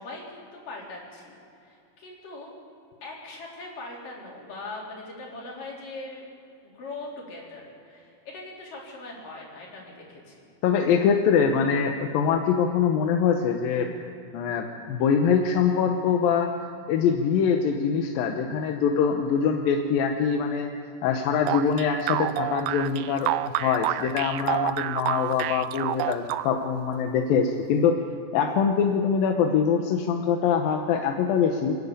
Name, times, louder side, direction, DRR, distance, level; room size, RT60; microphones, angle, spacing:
voice 1, 0.0-1.3 1.6-2.5 3.0-6.2 6.6-10.5, left 2 dB, 70° left, -3 dB, 5.5 m, -41 dB
voice 2, 10.6-13.9 14.3-16.5 16.9-20.7 21.0-23.3 23.6-28.0 28.3-31.8, left 6 dB, 90° left, 4 dB, 2.8 m, -23 dB
sound 1, 21.5-26.8, right 14 dB, 85° right, 1.6 m, -29 dB
27.5 x 11.0 x 8.6 m, 2.6 s
omnidirectional pair, 4.0 m